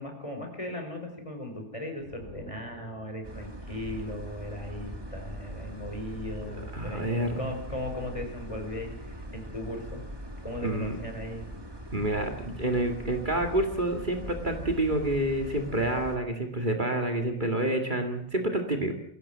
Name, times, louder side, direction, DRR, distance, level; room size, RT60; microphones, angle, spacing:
voice 1, 0.0-7.1 7.4-10.0 10.4-11.4, left 1 dB, 25° left, 3 dB, 5.2 m, -37 dB
sound 1, 2.0-3.6, equal, 75° left, 4.4 m, -48 dB
sound 2, 3.2-16.2, equal, 20° right, 2.3 m, -41 dB
voice 2, 6.7-7.4 10.6-11.0 11.9-18.9, right 1 dB, 40° right, 4 dB, 2.3 m, -28 dB
22.0 x 17.0 x 7.4 m, 0.67 s
omnidirectional pair, 1.2 m